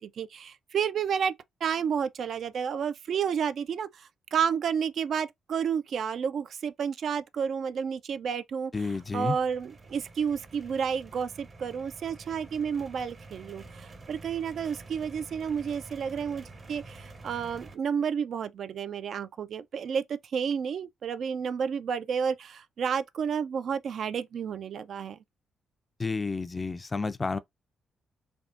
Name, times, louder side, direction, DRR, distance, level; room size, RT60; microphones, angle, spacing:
voice 1, 0.0-1.3 1.6-8.7 9.1-25.2, right 7 dB, 60° right, 0.3 m, -31 dB
voice 2, 8.7-9.4 26.0-27.4, left 4 dB, 30° left, 0.4 m, -30 dB
sound 1, 8.7-17.7, right 3 dB, 40° right, 0.7 m, -48 dB
3.4 x 2.4 x 2.5 m
hypercardioid pair, 40°, 0 cm